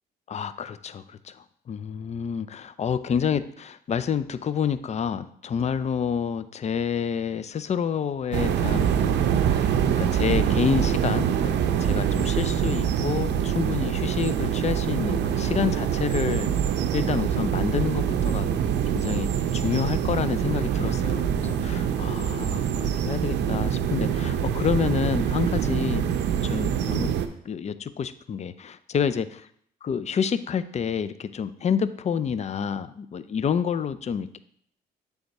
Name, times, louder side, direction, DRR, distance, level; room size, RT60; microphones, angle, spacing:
voice 1, 0.3-11.5 11.8-16.5 16.9-18.5 18.9-26.1 26.4-27.1 27.5-29.3 29.8-34.4, left 7 dB, 40° left, 13 dB, 0.4 m, -28 dB
sound 1, 8.3-27.3, right 8 dB, 75° right, 0.5 m, -25 dB
7.7 x 3.5 x 4.1 m, 0.65 s
supercardioid pair, 70°, 18 cm